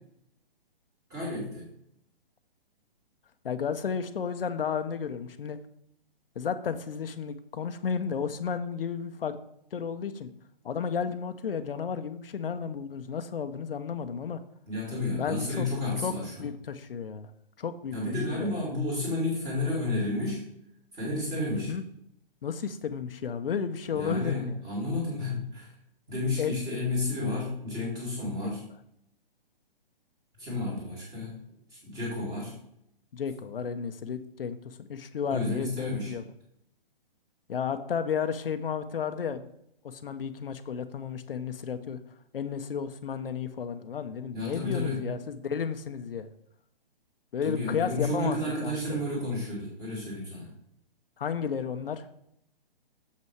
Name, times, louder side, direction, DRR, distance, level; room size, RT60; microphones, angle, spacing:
voice 1, 1.1-1.7 14.7-16.4 17.9-20.4 20.9-21.7 23.9-25.7 26.1-28.6 30.4-31.4 31.7-32.5 35.3-36.1 44.3-45.1 47.4-50.5, left 2 dB, 15° right, -3 dB, 2.3 m, -31 dB
voice 2, 3.4-5.6 6.4-9.3 9.7-10.3 10.6-14.4 15.2-15.7 16.0-16.1 16.4-17.3 17.6-18.0 18.3-18.6 21.5-21.8 22.4-24.6 26.4-26.5 33.1-36.2 37.5-39.5 39.8-42.0 42.3-46.3 47.3-48.4 48.6-49.0 51.2-52.1, left 7 dB, 70° left, 8 dB, 0.7 m, -32 dB
6.9 x 5.6 x 4.6 m, 0.75 s
hypercardioid pair, 165°, 29 cm